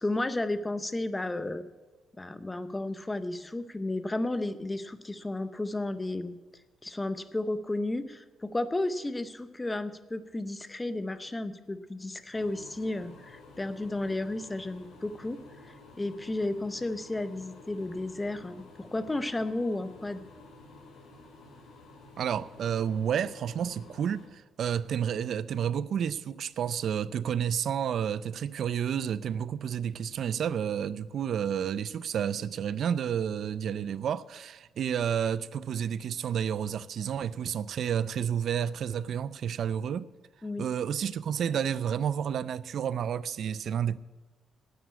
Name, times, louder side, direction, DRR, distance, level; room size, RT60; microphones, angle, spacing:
voice 1, 0.0-1.6 2.2-6.4 6.8-15.4 15.7-20.2 40.4-40.7, left 2 dB, 15° left, 0.6 m, -33 dB
sound 1, 12.3-24.3, left 2 dB, 70° left, 3.3 m, -52 dB
voice 2, 22.2-40.1 40.6-44.0, right 8 dB, 55° right, 0.4 m, -30 dB
9.3 x 9.2 x 8.3 m
cardioid pair, 140°, 0 cm